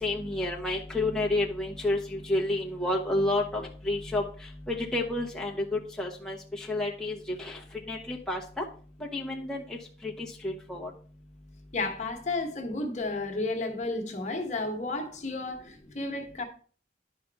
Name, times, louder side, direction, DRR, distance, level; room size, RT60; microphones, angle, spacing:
voice 1, 0.0-4.2 4.7-7.6 7.9-8.6 9.1-9.6 10.0-10.9, left 2 dB, 5° left, 0.9 m, -30 dB
voice 2, 11.7-16.4, left 2 dB, 40° left, 1.3 m, -32 dB
11.0 x 5.1 x 3.5 m
head